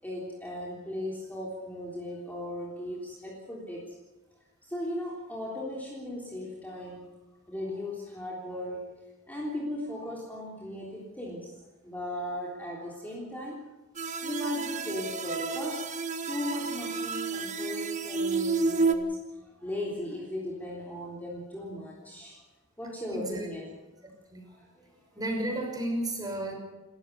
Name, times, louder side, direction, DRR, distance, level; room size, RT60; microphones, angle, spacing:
voice 1, 0.0-4.0 4.6-7.1 7.5-8.9 9.3-11.6 11.8-13.6 14.2-15.9 16.3-19.2 19.6-22.4 22.8-23.7 24.4-25.2, left 1 dB, 10° left, -4 dB, 3.5 m, -37 dB
sound 1, 14.0-19.0, right 4 dB, 35° right, 1.4 m, -30 dB
voice 2, 23.1-23.5 24.3-24.4 25.2-26.5, right 1 dB, 20° right, 1 dB, 6.0 m, -32 dB
29.0 x 14.0 x 7.0 m, 1.1 s
head